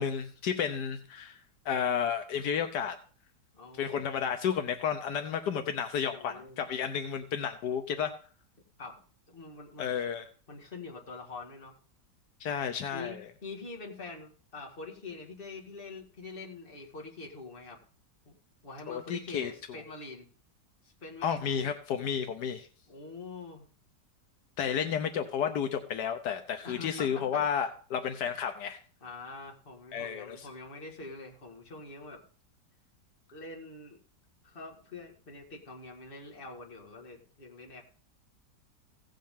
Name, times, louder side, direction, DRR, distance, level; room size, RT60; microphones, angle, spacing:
voice 1, 0.0-1.4 1.6-2.9 3.7-8.1 9.8-10.2 12.4-13.3 18.9-19.8 21.2-22.7 24.6-28.8 29.9-30.5, left 7 dB, 80° left, 7 dB, 1.4 m, -32 dB
voice 2, 3.5-4.2 6.1-6.6 8.8-9.0 9.3-10.0 10.5-11.7 12.9-17.8 18.3-18.4 18.6-20.3 20.8-21.7 22.9-23.7 26.6-27.4 29.0-32.2 33.3-34.0 34.4-37.8, left 3 dB, 30° left, 0 dB, 2.0 m, -45 dB
16.0 x 7.5 x 3.7 m, 0.41 s
omnidirectional pair, 1.8 m